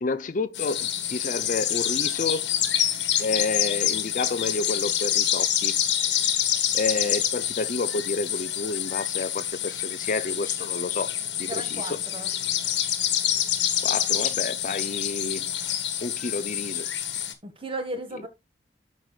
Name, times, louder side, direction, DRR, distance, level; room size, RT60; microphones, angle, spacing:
voice 1, 0.0-2.5 3.2-5.8 6.7-11.1 11.4-11.9 13.8-15.5 16.0-16.9, left 3 dB, 45° left, 0.5 m, -30 dB
sound 1, 0.5-17.3, left 10 dB, 75° left, 1.3 m, -27 dB
voice 2, 11.5-12.3 17.4-18.3, right 2 dB, 30° right, 1.8 m, -35 dB
12.5 x 4.7 x 2.3 m
head